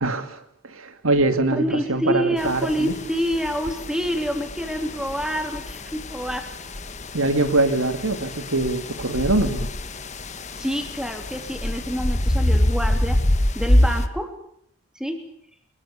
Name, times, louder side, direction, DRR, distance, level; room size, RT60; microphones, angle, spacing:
voice 1, 0.0-2.9 7.1-9.7, right 2 dB, 90° right, 2.5 m, -23 dB
voice 2, 1.5-6.5 10.6-13.2 13.5-14.3 14.9-15.2, equal, 5° right, 3.2 m, -27 dB
sound 1, 2.4-14.1, left 1 dB, 35° left, 1.3 m, -26 dB
25.0 x 22.0 x 7.1 m
head